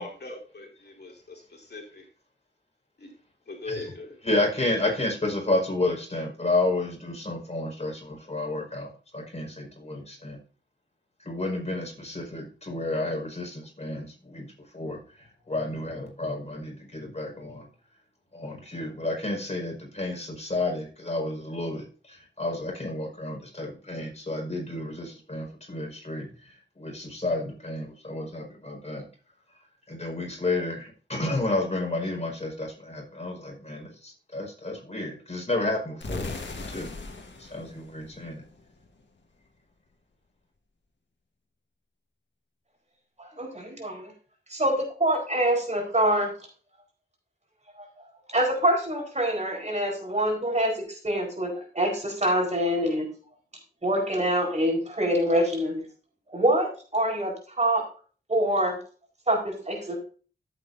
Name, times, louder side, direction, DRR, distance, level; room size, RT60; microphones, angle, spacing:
voice 1, 0.0-2.0 3.0-3.1 3.5-4.2, left 2 dB, 65° left, 0 dB, 2.8 m, -40 dB
voice 2, 4.2-8.9 9.1-10.4 11.2-14.5 14.7-15.0 15.5-17.6 18.3-26.2 26.8-29.0 29.9-36.3 36.7-36.9 37.5-38.4, left 2 dB, 35° left, 0 dB, 5.1 m, -31 dB
sound 1, 36.0-38.9, left 3 dB, 85° left, 1.6 m, -38 dB
voice 3, 43.2-44.1 44.5-46.3 48.3-53.1 53.8-55.8 56.3-57.8 58.3-58.8 59.3-60.0, right 1 dB, 40° right, 1 dB, 4.5 m, -25 dB
14.5 x 8.0 x 2.7 m, 0.39 s
wide cardioid pair, 85°, 18 cm